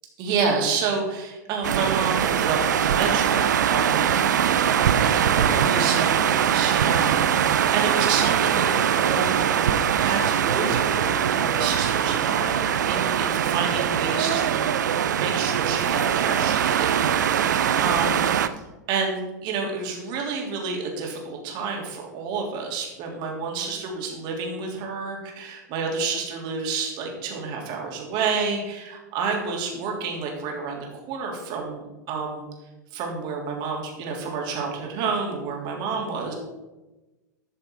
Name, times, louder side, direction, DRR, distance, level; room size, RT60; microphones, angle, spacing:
voice 1, 0.2-4.3 4.7-14.7 15.1-16.9 17.2-18.2 18.9-32.4 32.9-36.3, right 5 dB, 50° right, 0 dB, 3.0 m, -29 dB
sound 1, 1.6-18.5, right 9 dB, 75° right, 0.6 m, -22 dB
12.0 x 6.7 x 4.6 m, 1.1 s
hypercardioid pair, 90°, 10 cm